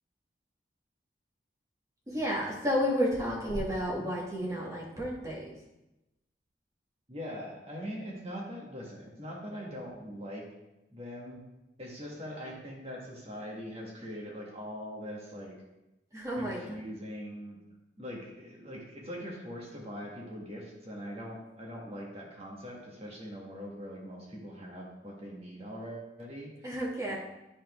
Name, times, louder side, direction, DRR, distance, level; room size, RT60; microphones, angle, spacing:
voice 1, 2.1-5.5 16.1-16.6 26.6-27.2, equal, 20° right, -5 dB, 1.6 m, -31 dB
voice 2, 7.1-10.4 10.9-11.4 11.8-15.5 16.4-17.6 18.0-26.5 27.1-27.2, equal, 35° right, -2 dB, 1.7 m, -42 dB
10.0 x 4.3 x 3.6 m, 0.95 s
head